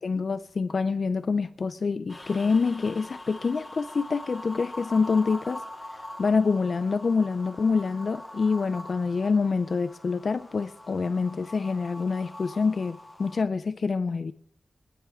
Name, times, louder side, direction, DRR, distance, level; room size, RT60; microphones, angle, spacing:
voice 1, 0.0-5.6 6.2-14.3, left 4 dB, 55° left, 0.4 m, -26 dB
sound 1, 2.1-13.4, left 1 dB, 20° left, 0.9 m, -43 dB
23.0 x 9.7 x 3.6 m
wide cardioid pair, 125°, 0 cm